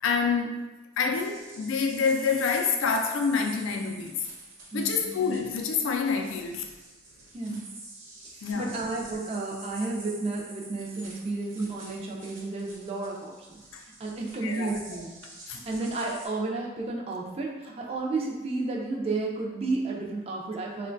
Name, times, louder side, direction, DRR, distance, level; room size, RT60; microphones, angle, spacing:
voice 1, 0.0-0.5 1.0-4.2 4.7-6.6 7.5-7.6 8.4-8.7 13.7-13.8 14.4-14.7 15.5-15.6, left 5 dB, 70° left, 3 dB, 0.4 m, -27 dB
sound 1, 1.1-16.3, right 2 dB, 60° right, 0.7 m, -47 dB
voice 2, 4.7-5.0 7.3-7.6 8.2-13.6 14.0-15.1 15.7-20.9, right 3 dB, 30° right, -1 dB, 0.3 m, -32 dB
3.7 x 2.1 x 2.5 m, 1.2 s
head